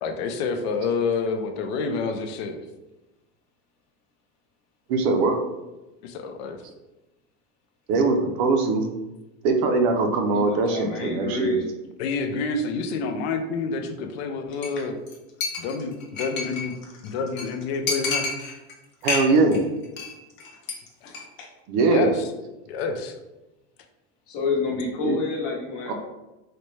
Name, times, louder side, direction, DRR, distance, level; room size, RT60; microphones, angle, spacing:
voice 1, 0.0-2.6 6.0-6.6 12.0-14.9 15.6-16.7 17.0-18.3 21.0-21.1 21.9-22.3 22.7-23.2, left 4 dB, 80° left, 5 dB, 0.5 m, -28 dB
voice 2, 4.9-5.4 7.9-8.8 9.4-11.6 19.0-19.6 21.7-22.1 25.0-25.2 25.9-26.0, right 3 dB, 50° right, 4 dB, 0.5 m, -21 dB
voice 3, 10.3-11.7 16.8-16.9 21.4-21.5 24.3-25.9, left 4 dB, 55° left, -1 dB, 1.0 m, -29 dB
Chink clink, 14.6-14.8 15.1-15.2 15.4-16.7 17.0-17.1 17.4-17.5 17.9-18.7 19.0-19.6 19.8-20.1 20.4-20.7 21.0-21.2, left 4 dB, 35° left, 0.7 m, -29 dB
4.1 x 2.1 x 3.1 m, 1.0 s
cardioid pair, 175°, 32 cm